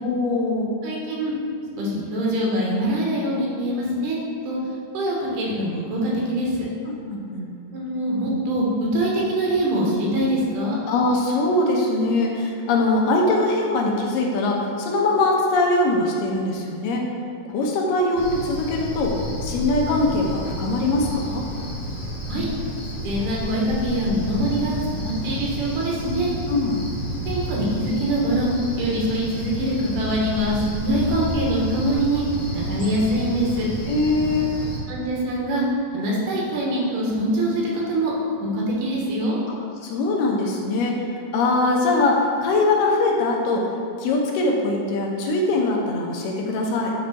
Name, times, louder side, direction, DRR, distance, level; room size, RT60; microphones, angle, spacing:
voice 1, 0.0-0.7 6.9-7.4 10.9-17.0 17.5-21.4 26.5-26.9 33.9-34.6 39.5-41.0 41.3-43.7 44.0-46.9, left 2 dB, 80° left, -1 dB, 2.4 m, -22 dB
voice 2, 0.8-1.3 1.8-4.2 4.5-4.6 4.9-6.6 7.7-10.8 22.3-22.5 23.0-26.3 27.3-28.5 28.8-32.2 32.5-33.7 34.9-35.6 35.9-38.1 38.4-39.4, right 1 dB, 75° right, -3 dB, 2.6 m, -24 dB
Cricket, 18.2-34.8, equal, 45° left, 1.5 m, -30 dB
9.5 x 3.3 x 4.1 m, 2.5 s
omnidirectional pair, 3.9 m